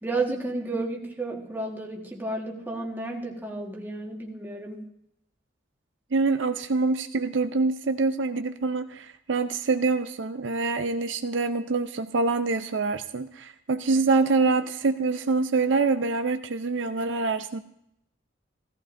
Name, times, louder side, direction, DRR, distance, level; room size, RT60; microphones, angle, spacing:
voice 1, 0.0-4.8, right 2 dB, 10° right, -2 dB, 1.5 m, -32 dB
voice 2, 6.1-17.6, right 3 dB, 65° right, 9 dB, 0.5 m, -25 dB
16.0 x 14.5 x 2.6 m, 0.78 s
head